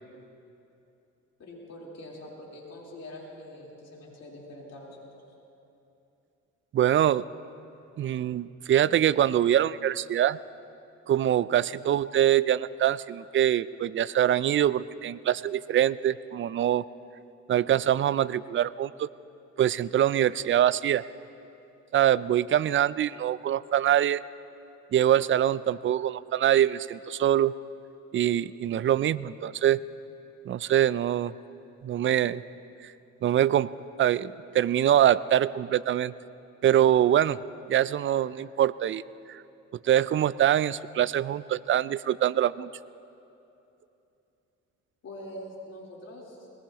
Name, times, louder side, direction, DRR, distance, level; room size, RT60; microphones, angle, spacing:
voice 1, 1.4-5.1 45.0-46.4, left 1 dB, 55° left, -3 dB, 3.8 m, -44 dB
voice 2, 6.7-7.3 8.0-10.4 11.1-16.8 17.5-19.1 19.6-21.0 21.9-24.2 24.9-27.6 28.1-29.8 30.5-31.3 31.8-32.4 33.2-33.7 34.0-36.1 36.6-37.4 37.7-39.0 39.3-39.4 39.8-42.7, right 11 dB, 45° right, 18 dB, 0.4 m, -24 dB
21.0 x 20.0 x 3.0 m, 2.8 s
cardioid pair, 90°, 30 cm